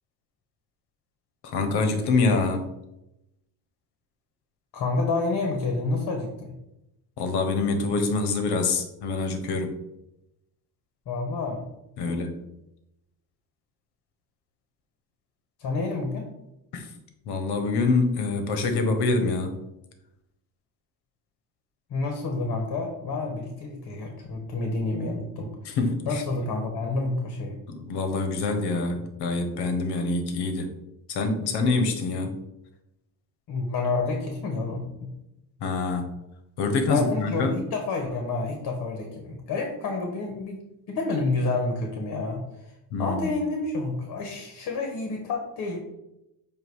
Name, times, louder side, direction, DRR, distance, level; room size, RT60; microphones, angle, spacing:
voice 1, 1.4-2.7 7.2-9.7 12.0-12.4 16.7-16.9 17.3-19.6 25.7-26.2 27.7-30.7 31.1-32.4 35.6-36.0 36.6-37.5 42.9-43.3, left 3 dB, 75° left, 6 dB, 1.2 m, -25 dB
voice 2, 4.7-6.5 11.1-11.6 12.0-12.2 15.6-16.3 21.9-25.8 26.0-27.6 33.5-35.1 36.9-40.6 40.9-42.4 43.0-45.8, left 3 dB, 60° left, 2 dB, 1.4 m, -29 dB
7.8 x 2.6 x 4.7 m, 0.87 s
cardioid pair, 90°, 40 cm